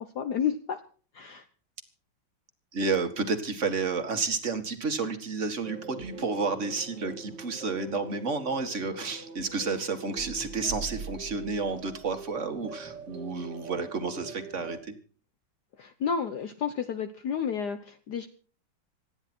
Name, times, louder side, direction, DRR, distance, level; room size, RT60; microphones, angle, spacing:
voice 1, 0.1-0.8 1.1-1.4 15.8-18.3, left 7 dB, 60° left, 8 dB, 1.4 m, -31 dB
voice 2, 2.7-14.9, right 4 dB, 35° right, 8 dB, 2.0 m, -31 dB
sound 1, 5.6-14.8, right 4 dB, 60° right, 2.2 m, -43 dB
26.5 x 10.0 x 4.5 m, 0.42 s
omnidirectional pair, 2.2 m